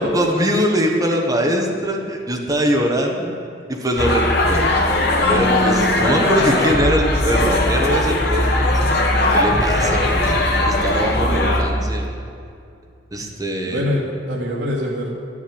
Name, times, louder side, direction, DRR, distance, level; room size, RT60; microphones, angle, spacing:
voice 1, 0.0-3.4 3.7-8.7 9.3-10.3 10.7-12.1 13.1-13.9, equal, 20° right, 1 dB, 1.3 m, -22 dB
sound 1, 4.0-11.6, left 1 dB, 60° left, 1.6 m, -18 dB
voice 2, 11.3-11.7 13.6-15.1, left 1 dB, 80° right, -4 dB, 2.0 m, -25 dB
12.0 x 7.3 x 9.3 m, 2.4 s
head